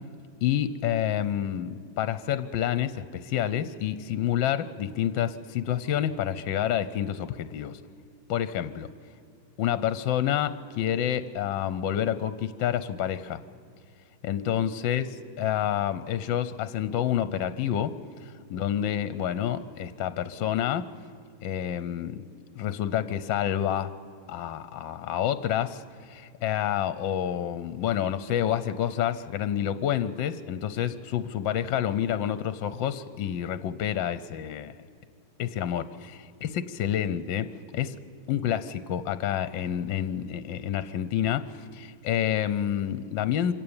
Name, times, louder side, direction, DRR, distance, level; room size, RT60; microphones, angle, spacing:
voice 1, 0.4-7.8 8.3-8.9 9.6-13.4 14.2-20.9 21.4-23.9 24.3-34.7 35.4-37.5 37.7-38.0 38.3-43.5, left 10 dB, 70° left, 15 dB, 1.3 m, -28 dB
25.5 x 16.5 x 8.8 m, 2.3 s
omnidirectional pair, 2.3 m